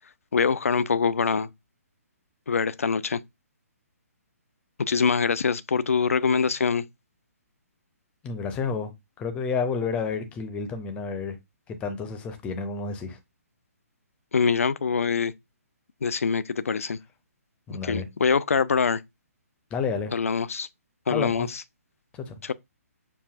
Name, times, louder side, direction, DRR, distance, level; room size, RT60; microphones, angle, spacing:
voice 1, 0.3-1.5 2.5-3.2 4.9-6.8 14.3-15.3 16.0-17.0 17.9-19.0 20.1-20.7 21.1-21.5 22.4-22.5, left 5 dB, 60° left, 0.4 m, -24 dB
voice 2, 8.2-8.9 9.2-11.4 11.7-13.2 17.7-18.1 19.7-20.1 21.1-21.5 22.1-22.4, left 5 dB, 15° left, 0.6 m, -30 dB
6.7 x 2.5 x 2.4 m
figure-of-eight pair, 135°, 8 cm